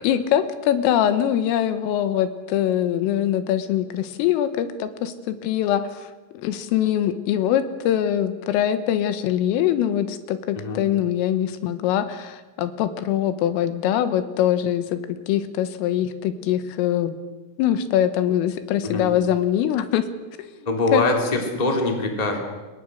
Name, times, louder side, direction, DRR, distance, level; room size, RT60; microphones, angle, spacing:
voice 1, 0.0-6.1 6.4-15.0 15.3-17.1 17.6-20.1 20.4-20.5 20.9-21.1, left 11 dB, 85° left, 11 dB, 3.8 m, -23 dB
voice 2, 20.6-22.4, left 2 dB, 10° left, 3 dB, 2.3 m, -23 dB
27.5 x 21.5 x 6.4 m, 1.2 s
omnidirectional pair, 5.8 m